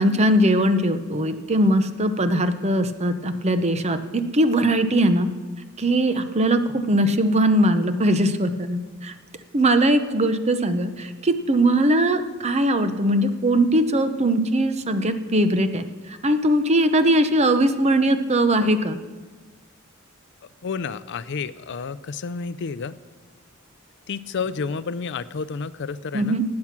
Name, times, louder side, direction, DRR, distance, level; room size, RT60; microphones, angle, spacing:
voice 1, 0.0-5.3 5.8-9.1 9.5-15.8 16.2-19.0 26.1-26.4, right 1 dB, 30° right, 10 dB, 0.8 m, -20 dB
voice 2, 20.6-23.0 24.1-26.4, left 5 dB, 55° left, 15 dB, 0.5 m, -30 dB
18.0 x 8.6 x 5.9 m, 1.4 s
head